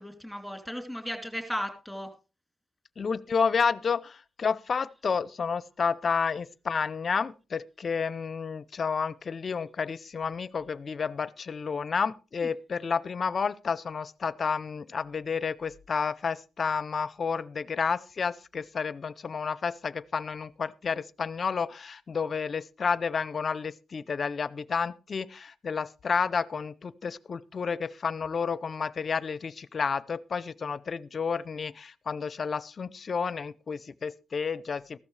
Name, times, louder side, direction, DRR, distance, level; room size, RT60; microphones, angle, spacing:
voice 1, 0.0-2.1, equal, ahead, 3.2 m, -35 dB
voice 2, 3.0-35.0, left 5 dB, 45° left, 0.6 m, -30 dB
15.0 x 12.5 x 3.3 m
cardioid pair, 110°, 0 cm